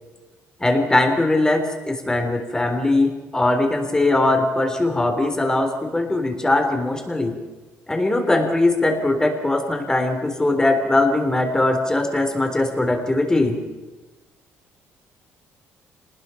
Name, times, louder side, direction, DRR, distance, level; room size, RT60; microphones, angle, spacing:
voice 1, 0.6-7.4 7.9-13.6, left 2 dB, 15° left, 5 dB, 3.8 m, -20 dB
26.5 x 20.0 x 5.9 m, 1.2 s
cardioid pair, 110°, 5 cm